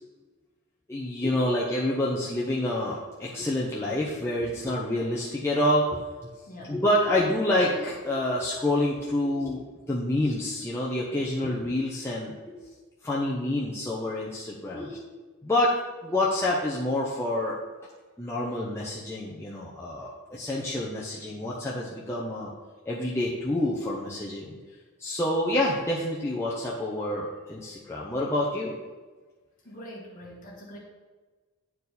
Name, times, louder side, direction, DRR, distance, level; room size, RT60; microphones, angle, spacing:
voice 1, 0.9-6.0 6.7-12.6 13.0-15.0 15.4-15.7 16.0-17.6 18.2-22.5 22.9-24.6 25.0-28.7, left 1 dB, 10° left, -6 dB, 0.8 m, -27 dB
voice 2, 6.5-6.8 29.6-30.8, equal, 40° left, -3 dB, 1.9 m, -43 dB
9.8 x 4.6 x 4.1 m, 1.3 s
head